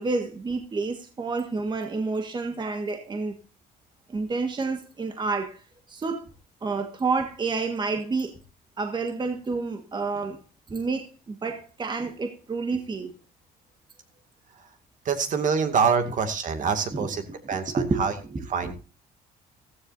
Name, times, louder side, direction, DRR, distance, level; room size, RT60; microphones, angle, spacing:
voice 1, 0.0-3.4 4.1-5.6 5.9-6.2 6.6-8.3 8.8-10.4 10.7-13.1 16.9-17.1 17.7-18.7, right 4 dB, 25° right, 1.6 m, -29 dB
voice 2, 15.1-18.1 18.5-18.7, right 6 dB, 50° right, 2.1 m, -25 dB
15.0 x 14.0 x 2.7 m
cardioid pair, 110°, 17 cm